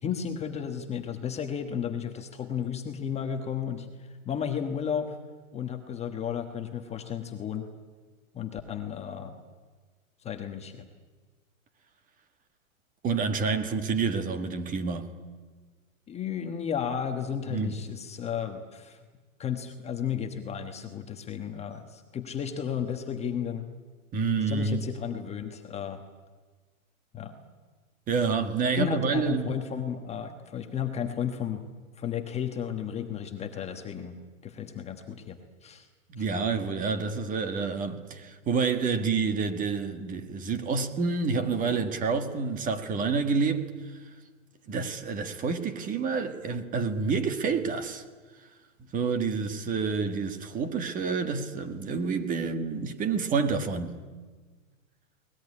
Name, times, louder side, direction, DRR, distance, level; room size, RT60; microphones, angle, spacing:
voice 1, 0.0-5.2 5.5-7.7 8.3-9.3 10.2-10.9 16.1-19.0 19.4-23.7 24.5-26.0 27.1-27.4 28.8-31.6 32.0-34.1 34.4-35.9 36.2-36.3, left 8 dB, 15° left, 1.3 m, -33 dB
voice 2, 13.0-15.1 17.5-17.7 24.1-24.9 28.1-29.5 36.1-44.0 44.7-48.0 48.9-54.0, right 5 dB, 20° right, 1.7 m, -28 dB
22.5 x 19.5 x 9.9 m
hypercardioid pair, 145°, 42 cm